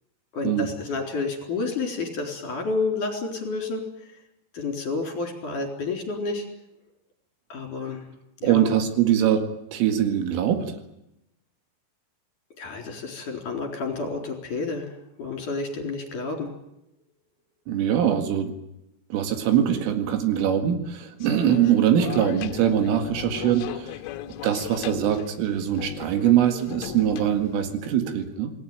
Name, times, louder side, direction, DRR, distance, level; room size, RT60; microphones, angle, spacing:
voice 1, 0.3-4.1 4.5-6.4 7.5-8.0 8.4-8.7 12.6-14.9 15.2-16.5, left 3 dB, 40° left, 3 dB, 5.1 m, -30 dB
voice 2, 8.4-10.7 17.7-18.5 19.1-24.0 24.4-28.5, right 10 dB, 75° right, 7 dB, 4.5 m, -23 dB
sound 1, 21.2-27.8, left 12 dB, 80° left, 3.7 m, -37 dB
27.5 x 19.0 x 9.3 m, 0.87 s
omnidirectional pair, 5.9 m